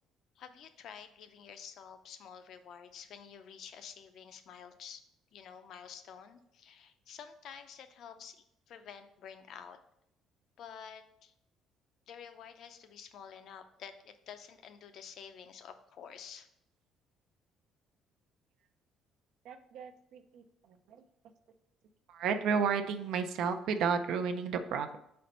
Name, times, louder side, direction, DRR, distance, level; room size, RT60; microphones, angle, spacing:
voice 1, 0.4-5.0 5.3-9.8 10.6-11.3 12.1-16.5, left 7 dB, 55° left, 9 dB, 0.5 m, -50 dB
voice 2, 19.4-21.0 22.1-25.0, right 6 dB, 70° right, 7 dB, 0.5 m, -33 dB
4.3 x 4.1 x 5.3 m, 0.78 s
cardioid pair, 145°, 0 cm